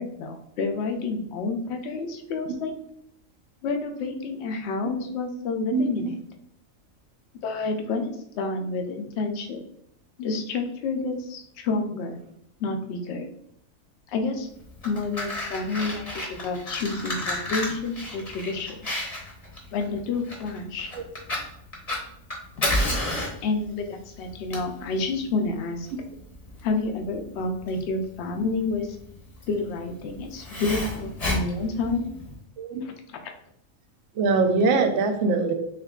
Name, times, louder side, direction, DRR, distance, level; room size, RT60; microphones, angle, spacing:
voice 1, 0.0-2.7 3.6-6.2 7.4-8.1 8.4-9.6 10.2-12.2 12.6-13.2 14.1-14.5 14.8-18.8 19.7-20.9 23.2-25.9 26.6-28.9 29.5-32.1 32.8-32.9, left 3 dB, 65° left, 4 dB, 0.8 m, -29 dB
Fire, 14.6-32.4, left 1 dB, 35° left, 0.8 m, -32 dB
voice 2, 34.2-35.5, right 4 dB, 70° right, 5 dB, 0.8 m, -22 dB
3.6 x 3.2 x 2.3 m, 0.73 s
omnidirectional pair, 1.4 m